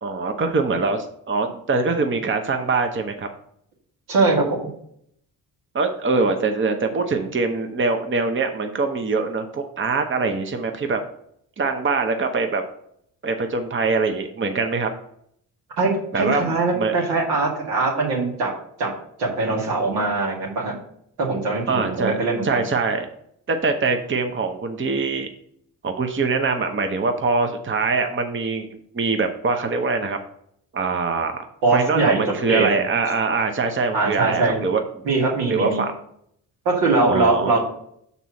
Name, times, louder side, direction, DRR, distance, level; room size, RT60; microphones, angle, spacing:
voice 1, 0.0-3.3 5.7-11.0 11.6-12.6 13.2-14.9 16.1-17.0 21.7-22.1 22.4-23.1 23.5-25.3 25.8-30.2 30.7-31.4 31.7-34.8 35.5-35.9 37.1-37.6, right 4 dB, 30° right, 6 dB, 0.9 m, -23 dB
voice 2, 4.1-4.6 15.8-18.5 18.8-18.9 19.2-20.8 21.2-22.6 31.6-32.2 32.5-32.8 33.9-34.6 35.1-35.8 36.7-37.7, right 3 dB, 85° right, -2 dB, 2.1 m, -21 dB
6.0 x 4.2 x 5.8 m, 0.70 s
supercardioid pair, 60°, 39 cm